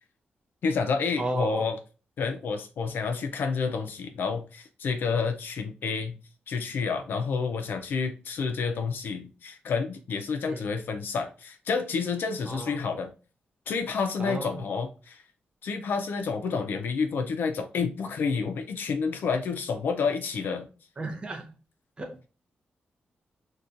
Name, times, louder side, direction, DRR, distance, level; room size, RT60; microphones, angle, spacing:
voice 1, 0.6-1.8 2.2-6.2 6.5-13.1 13.7-15.2 15.6-20.7, left 5 dB, 75° left, 0.3 m, -29 dB
voice 2, 1.2-1.7 10.5-10.7 12.5-12.8 14.2-14.6 21.0-21.6 22.0-22.3, right 2 dB, 30° right, 0.5 m, -34 dB
2.7 x 2.2 x 2.4 m
cardioid pair, 90°, 4 cm